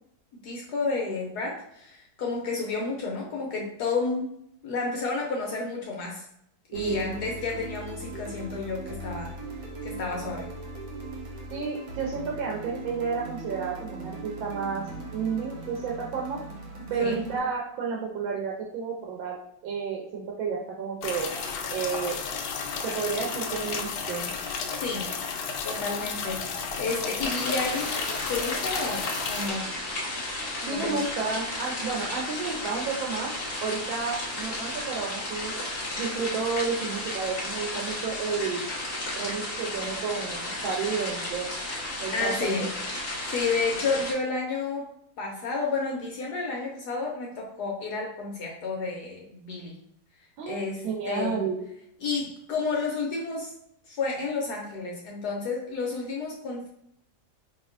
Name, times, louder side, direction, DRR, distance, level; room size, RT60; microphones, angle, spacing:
voice 1, 0.4-4.3 4.6-6.2 6.7-9.3 9.8-10.5 17.0-17.2 24.8-25.1 25.6-28.0 28.3-29.7 30.6-31.0 42.1-42.7 43.0-44.9 45.2-49.8 50.5-51.4 52.0-53.5 53.9-56.7, left 4 dB, 65° left, -1 dB, 1.1 m, -31 dB
sound 1, 6.7-17.4, right 2 dB, 55° right, 1.3 m, -39 dB
voice 2, 6.7-7.0 11.5-14.8 15.1-16.4 16.9-19.4 19.6-21.3 21.7-22.2 22.8-24.3 30.6-33.3 33.6-35.5 36.0-38.7 39.2-41.5 42.0-42.7 50.4-51.6, right 5 dB, 85° right, -2 dB, 1.5 m, -31 dB
sound 2, 21.0-29.5, left 5 dB, 90° left, 1.4 m, -32 dB
sound 3, 27.2-44.1, left 1 dB, 40° left, 0.9 m, -34 dB
4.7 x 2.9 x 2.5 m, 0.75 s
omnidirectional pair, 2.1 m